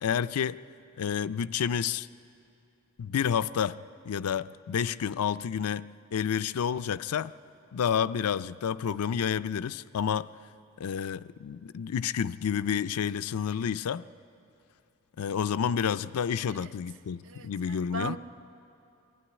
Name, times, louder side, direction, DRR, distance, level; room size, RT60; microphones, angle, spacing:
voice 1, 0.0-0.6 1.0-2.1 3.0-3.8 4.1-7.3 7.7-10.3 10.8-14.0 15.2-18.2, left 7 dB, 85° left, 0.4 m, -30 dB
voice 2, 17.2-18.2, right 2 dB, 60° right, 0.7 m, -38 dB
22.5 x 13.0 x 9.6 m
head